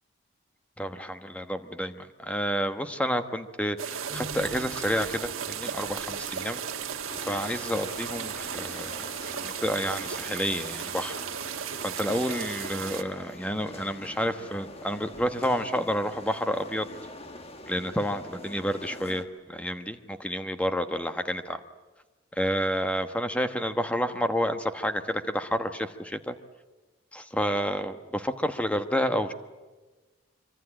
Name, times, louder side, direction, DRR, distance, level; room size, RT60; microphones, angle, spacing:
voice 1, 0.8-6.6 7.3-9.0 9.3-11.2 11.8-16.9 17.7-21.6 22.4-26.3 27.1-29.3, equal, 5° left, 8 dB, 1.1 m, -30 dB
sound 1, 3.8-13.0, right 8 dB, 85° right, 1.4 m, -35 dB
sound 2, 4.1-19.3 19.6-20.5, right 2 dB, 15° right, 6.6 m, -52 dB
sound 3, 7.1-19.2, left 2 dB, 30° left, 1.6 m, -44 dB
25.0 x 24.5 x 8.9 m, 1.2 s
head